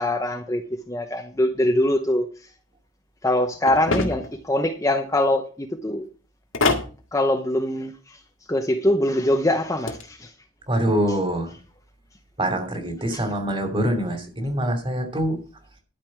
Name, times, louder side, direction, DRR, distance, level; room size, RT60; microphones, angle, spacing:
voice 1, 0.0-2.3 3.2-6.1 7.1-8.2 8.5-10.3 13.1-13.2, left 1 dB, 15° left, 0.8 m, -23 dB
sound 1, 3.7-4.4 6.5-6.9 9.6-10.0, left 3 dB, 80° left, 1.9 m, -24 dB
voice 2, 10.7-11.5 12.4-15.4, right 1 dB, 25° right, 2.7 m, -24 dB
12.0 x 5.3 x 7.4 m
head